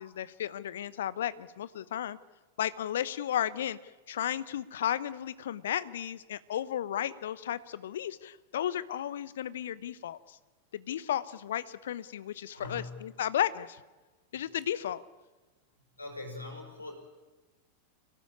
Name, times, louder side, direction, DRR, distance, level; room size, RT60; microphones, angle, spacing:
voice 1, 0.0-2.2 2.6-3.8 4.1-10.2 10.7-13.8 14.3-15.0, left 10 dB, 60° left, 17 dB, 0.9 m, -34 dB
voice 2, 12.5-13.0 16.0-16.9, left 2 dB, 80° left, 2 dB, 5.8 m, -42 dB
25.5 x 18.0 x 8.7 m, 1.2 s
figure-of-eight pair, 90°, 0 cm